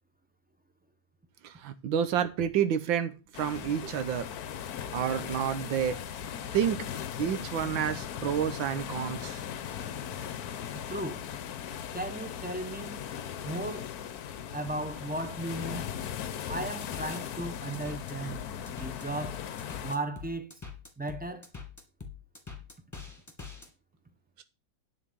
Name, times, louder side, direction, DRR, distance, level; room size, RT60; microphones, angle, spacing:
voice 1, 1.4-4.3 4.9-6.0 6.5-6.8 7.2-9.4 24.4-24.5, right 9 dB, 90° right, 1.7 m, -29 dB
sound 1, 3.3-20.0, left 9 dB, 60° left, 1.2 m, -38 dB
voice 2, 10.9-11.3 11.9-13.0 13.4-13.9 14.5-15.8 16.5-18.4 18.8-19.4 19.8-20.5 21.0-21.5, right 2 dB, 5° right, 0.8 m, -36 dB
sound 2, 16.5-23.7, left 6 dB, 10° left, 2.3 m, -44 dB
10.0 x 4.9 x 7.5 m
omnidirectional pair, 2.0 m